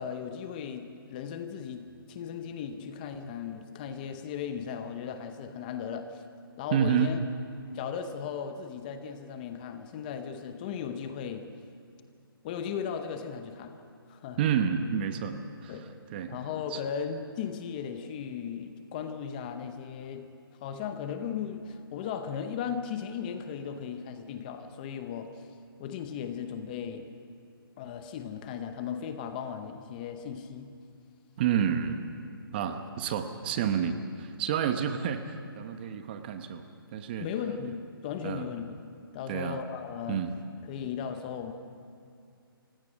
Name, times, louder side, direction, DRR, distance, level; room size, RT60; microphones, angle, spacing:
voice 1, 0.0-6.2 6.6-7.2 7.7-11.5 12.4-13.8 14.1-14.4 15.7-15.9 16.3-20.3 20.6-25.5 25.8-27.1 27.8-30.8 32.7-32.8 37.2-38.8 39.1-40.2 40.7-41.5, left 7 dB, 20° left, 8 dB, 0.8 m, -37 dB
voice 2, 6.7-7.1 14.4-15.7 16.1-16.4 16.7-16.8 31.4-32.0 32.5-37.3 38.2-38.5 39.3-39.6 40.1-40.3, right 8 dB, 25° right, 8 dB, 1.0 m, -29 dB
29.0 x 16.5 x 6.3 m, 2.4 s
hypercardioid pair, 165°, 13 cm